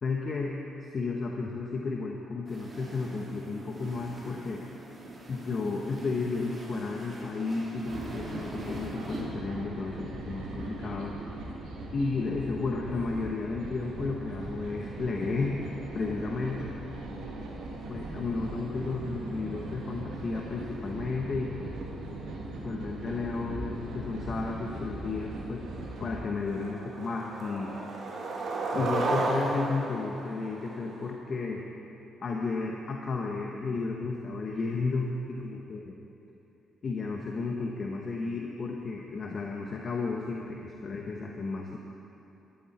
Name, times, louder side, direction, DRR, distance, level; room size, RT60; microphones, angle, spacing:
voice 1, 0.0-0.5 0.8-4.6 5.3-11.2 11.9-15.7 15.9-16.7 17.9-21.8 22.5-25.7 26.0-27.8 28.7-31.6 32.2-35.8 36.8-41.8, left 3 dB, 45° left, 0 dB, 1.0 m, -33 dB
sound 1, 2.5-9.2, right 2 dB, 35° right, 2.9 m, -44 dB
sound 2, 7.8-26.2, right 2 dB, 85° right, 2.1 m, -39 dB
Skateboard, 25.3-25.4 25.8-26.1 26.5-31.1, right 2 dB, 60° right, 2.2 m, -32 dB
14.0 x 11.5 x 4.3 m, 2.9 s
cardioid pair, 90°, 0 cm